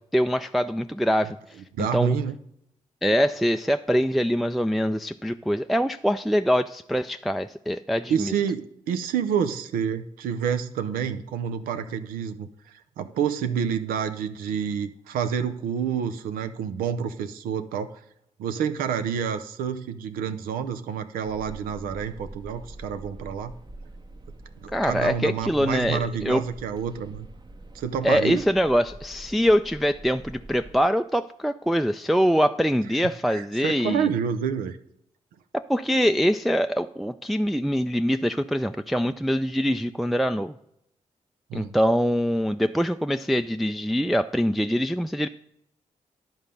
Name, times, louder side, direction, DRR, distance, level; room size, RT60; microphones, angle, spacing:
voice 1, 0.1-1.4 1.8-2.2 3.0-8.3 24.7-26.4 28.0-34.1 35.5-40.5 41.5-45.3, equal, ahead, 8 dB, 0.3 m, -24 dB
voice 2, 1.7-2.3 8.1-12.5 13.0-18.0 18.4-23.6 24.6-27.3 27.7-28.4 33.3-34.8 41.5-41.7, right 7 dB, 90° right, 9 dB, 0.5 m, -28 dB
sound 1, 21.2-30.8, right 2 dB, 30° right, 0.9 m, -45 dB
10.5 x 3.9 x 6.8 m, 0.76 s
supercardioid pair, 45°, 14 cm